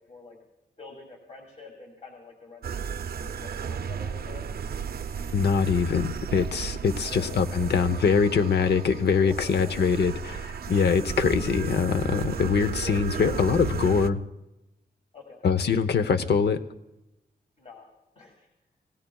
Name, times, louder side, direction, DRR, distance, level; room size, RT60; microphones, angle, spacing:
voice 1, 0.8-4.5 7.0-7.3 7.7-7.8 9.1-9.9 12.8-13.4 15.1-15.4 17.6-17.9 18.2-18.5, left 3 dB, 40° left, 0 dB, 2.4 m, -46 dB
sound 1, 2.6-14.1, right 7 dB, 65° right, 0.5 m, -34 dB
voice 2, 5.3-14.2 15.4-16.6, left 6 dB, 85° left, 10 dB, 0.8 m, -23 dB
25.5 x 18.0 x 2.3 m, 0.93 s
wide cardioid pair, 135°, 17 cm